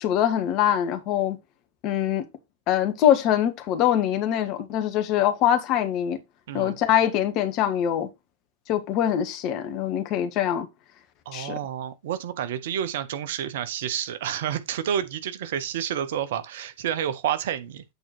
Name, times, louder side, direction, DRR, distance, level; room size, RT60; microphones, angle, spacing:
voice 1, 0.0-1.4 1.8-2.2 2.7-6.2 6.5-8.1 8.7-10.7 11.3-11.6, left 10 dB, 40° left, 1.4 m, -23 dB
voice 2, 11.3-17.8, right 9 dB, 55° right, 0.9 m, -29 dB
8.3 x 4.4 x 4.3 m
figure-of-eight pair, 90°, 0 cm